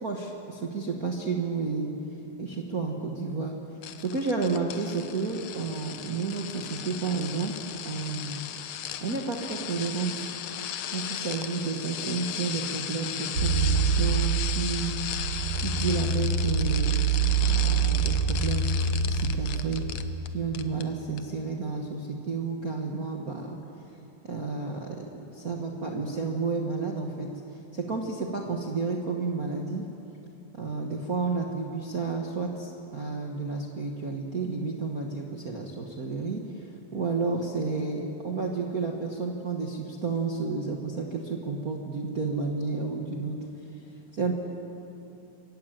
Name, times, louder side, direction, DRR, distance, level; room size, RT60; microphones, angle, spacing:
voice 1, 0.0-1.9 2.4-3.6 4.0-7.5 7.8-8.4 9.0-10.3 10.9-14.9 15.6-17.0 17.5-20.0 20.3-23.6 24.2-27.3 27.7-29.8 30.5-43.4 44.1-44.3, right 4 dB, 75° right, 1 dB, 0.8 m, -31 dB
sound 1, 3.8-20.3 20.5-20.8 21.2-21.3, left 10 dB, 70° left, 1.6 m, -36 dB
sound 2, 13.3-19.9, right 5 dB, 45° right, 1.9 m, -26 dB
24.0 x 15.5 x 9.1 m, 2.8 s
omnidirectional pair, 3.9 m